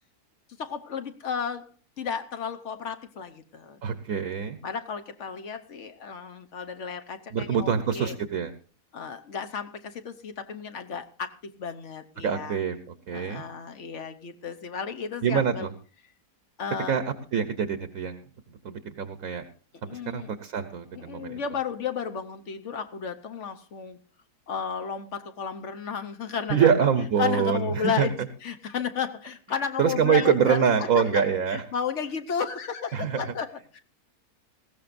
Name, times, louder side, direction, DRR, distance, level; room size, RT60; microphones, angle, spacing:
voice 1, 0.6-1.7 2.0-3.8 4.6-8.1 8.9-12.6 13.1-15.7 16.6-17.0 19.9-20.3 20.9-24.0 24.5-26.9 27.2-33.8, left 6 dB, 55° left, 8 dB, 1.1 m, -33 dB
voice 2, 3.8-4.6 7.3-8.5 12.2-12.8 13.1-13.4 15.2-15.7 16.9-17.0 17.3-18.2 18.6-19.4 19.8-21.4 26.5-28.1 29.8-31.6 32.9-33.2, right 7 dB, 65° right, 9 dB, 1.2 m, -25 dB
19.0 x 15.5 x 2.5 m, 0.38 s
omnidirectional pair, 1.7 m